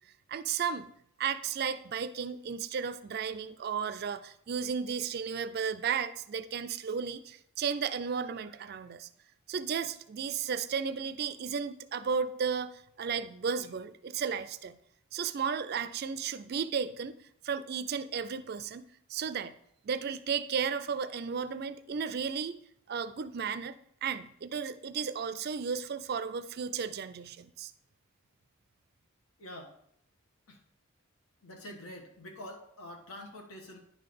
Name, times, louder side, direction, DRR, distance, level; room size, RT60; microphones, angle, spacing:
voice 1, 0.3-0.9 1.2-9.1 9.5-14.8 15.1-17.2 17.4-19.5 19.8-22.6 22.9-27.7, right 6 dB, 45° right, 14 dB, 0.4 m, -34 dB
voice 2, 29.4-29.8 30.5-30.6 31.4-33.8, left 1 dB, 85° left, 2 dB, 1.6 m, -46 dB
10.5 x 3.9 x 5.2 m, 0.70 s
head